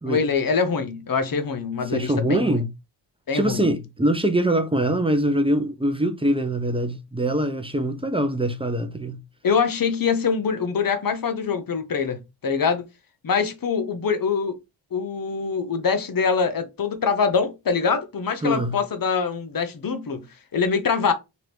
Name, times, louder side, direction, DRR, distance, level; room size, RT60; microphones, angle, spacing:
voice 1, 0.1-2.6 3.3-3.7 9.4-12.8 13.2-14.6 14.9-20.2 20.5-21.1, left 5 dB, 50° left, 0.7 m, -24 dB
voice 2, 1.9-2.7 3.3-9.2 18.4-18.8, right 1 dB, 10° right, 0.5 m, -23 dB
2.9 x 2.5 x 3.3 m
cardioid pair, 65°, 46 cm